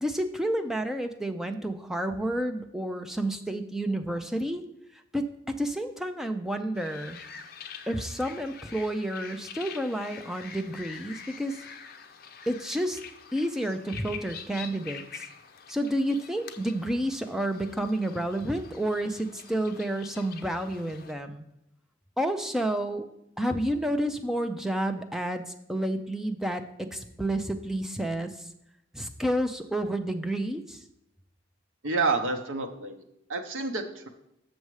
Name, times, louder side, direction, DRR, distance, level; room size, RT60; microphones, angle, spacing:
voice 1, 0.0-4.6 5.1-5.2 5.6-7.2 7.9-11.6 12.5-13.0 13.3-15.2 15.7-21.5 22.2-23.1 23.4-28.5 28.9-30.8, right 1 dB, ahead, 6 dB, 0.5 m, -30 dB
sound 1, 6.8-21.1, left 7 dB, 50° left, 0.6 m, -46 dB
voice 2, 31.8-33.0 33.3-34.1, right 3 dB, 85° right, 5 dB, 0.8 m, -29 dB
6.9 x 6.4 x 4.8 m, 0.83 s
head